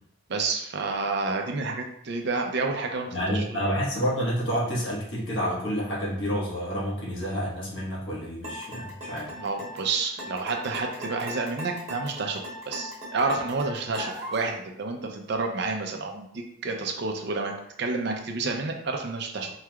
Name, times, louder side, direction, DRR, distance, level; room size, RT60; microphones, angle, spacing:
voice 1, 0.3-3.4 9.4-17.5 17.8-19.5, right 3 dB, 55° right, 3 dB, 0.5 m, -29 dB
voice 2, 3.1-9.3, equal, 60° left, -5 dB, 1.3 m, -29 dB
sound 1, 8.4-14.5, equal, 35° right, 1.2 m, -38 dB
4.6 x 3.1 x 2.3 m, 0.74 s
head